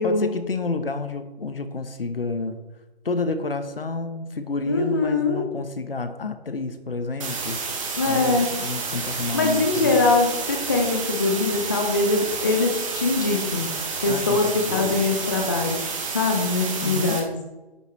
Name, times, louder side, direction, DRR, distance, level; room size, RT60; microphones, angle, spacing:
voice 1, 0.0-2.6 3.0-7.6 8.0-10.1 14.0-15.1 16.8-17.3, left 3 dB, 60° left, 9 dB, 1.0 m, -30 dB
voice 2, 4.7-5.4 8.0-8.5 9.3-13.7 14.0-15.8 16.1-17.3, left 3 dB, 20° left, 3 dB, 0.5 m, -22 dB
sound 1, 7.2-17.2, right 4 dB, 30° right, 1.2 m, -30 dB
9.9 x 7.9 x 3.1 m, 1.1 s
figure-of-eight pair, 145°, 31 cm